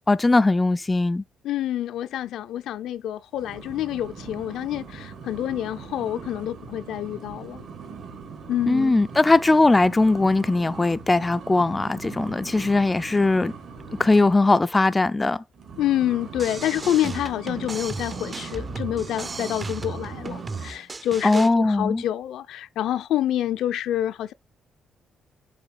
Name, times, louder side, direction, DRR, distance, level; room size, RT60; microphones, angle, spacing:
voice 1, 0.1-1.2 8.7-13.5 14.0-15.4 21.2-22.0, left 2 dB, 20° left, 0.4 m, -20 dB
voice 2, 1.4-7.6 8.5-9.0 15.8-24.3, left 12 dB, 80° left, 0.5 m, -27 dB
sound 1, 3.3-14.5 15.5-20.7, right 5 dB, 65° right, 2.4 m, -40 dB
sound 2, 16.3-21.5, right 4 dB, 30° right, 0.6 m, -35 dB
6.7 x 3.2 x 5.5 m
cardioid pair, 90°, 0 cm